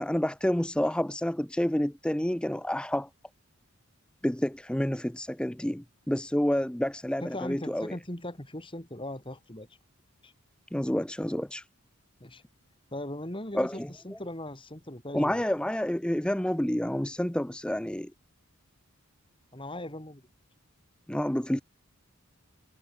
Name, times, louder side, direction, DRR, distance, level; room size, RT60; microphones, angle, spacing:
voice 1, 0.0-3.1 4.2-7.9 10.7-11.7 13.5-14.2 15.1-18.1 21.1-21.6, left 1 dB, 5° left, 0.5 m, -29 dB
voice 2, 7.2-9.7 10.2-10.3 12.2-12.4 12.9-15.4 19.5-20.2, left 1 dB, 25° left, 3.0 m, -39 dB
head